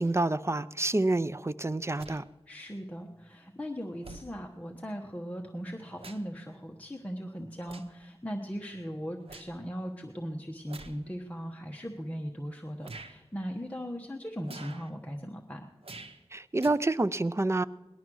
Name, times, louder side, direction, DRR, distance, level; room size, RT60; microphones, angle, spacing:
voice 1, 0.0-2.2 16.3-17.6, right 2 dB, 30° right, 12 dB, 0.5 m, -28 dB
sound 1, 2.0-2.2 3.3-3.4 4.0-4.3 5.5-6.4 6.8-7.0 7.6-8.0 8.5-9.6 10.7-11.0 11.7-11.8 12.8-13.1 14.4-14.9 15.8-16.2 16.6-16.7, right 3 dB, 85° right, 0.9 m, -48 dB
voice 2, 2.5-15.6, equal, 15° left, 1 dB, 1.1 m, -38 dB
18.5 x 11.5 x 6.2 m, 1.1 s
wide cardioid pair, 60°, 10 cm